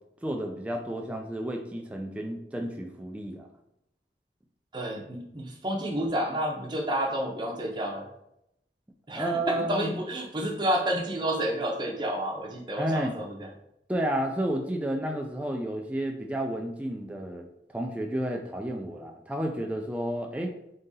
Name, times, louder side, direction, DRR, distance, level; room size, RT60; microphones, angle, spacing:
voice 1, 0.2-3.5 9.1-9.9 12.8-13.2 13.9-20.5, right 1 dB, 5° right, 1 dB, 0.3 m, -31 dB
voice 2, 4.7-8.1 9.1-13.5, right 1 dB, 25° right, 0 dB, 0.7 m, -30 dB
3.8 x 3.7 x 2.7 m, 0.80 s
head